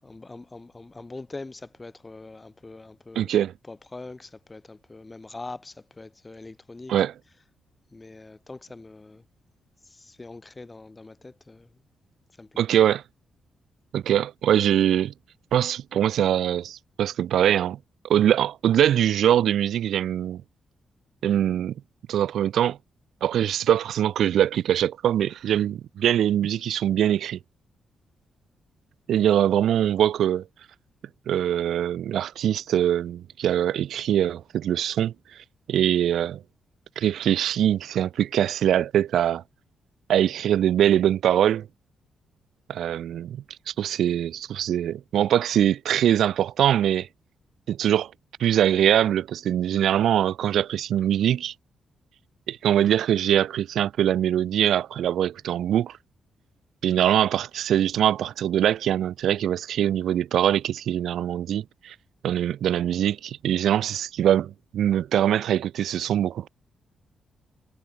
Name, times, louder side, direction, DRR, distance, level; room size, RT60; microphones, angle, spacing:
voice 1, 0.0-3.3 3.7-6.9 7.9-9.2 9.8-11.7 12.4-12.6, left 3 dB, 20° left, 5.8 m, -43 dB
voice 2, 3.2-3.5 6.9-7.1 12.6-13.0 13.9-15.1 15.5-17.8 18.0-20.4 21.2-21.7 22.1-22.8 23.2-27.4 29.1-30.5 31.3-35.1 35.7-36.4 37.0-39.4 40.1-41.7 42.7-47.1 47.7-48.1 48.4-51.5 52.5-56.0 56.8-61.9 62.2-66.5, right 10 dB, 80° right, 2.2 m, -23 dB
cardioid pair, 115°, 0 cm